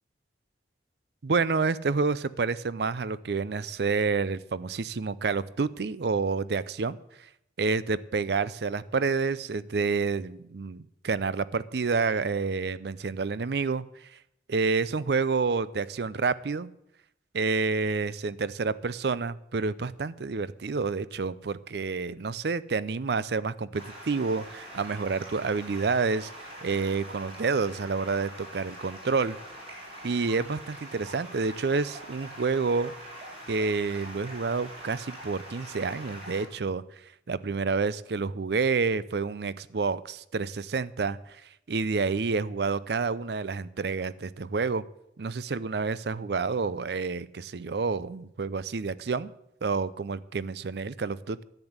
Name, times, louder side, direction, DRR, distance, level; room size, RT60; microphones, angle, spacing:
voice 1, 1.2-7.0 7.6-13.8 14.5-16.7 17.3-26.3 26.6-29.4 30.0-32.9 33.5-36.8 37.3-41.2 41.7-44.8 45.2-49.3 49.6-51.4, right 4 dB, 65° right, 17 dB, 0.5 m, -29 dB
Stream, 23.7-36.4, right 1 dB, 35° right, 3.9 m, -44 dB
10.5 x 8.0 x 8.0 m, 0.79 s
head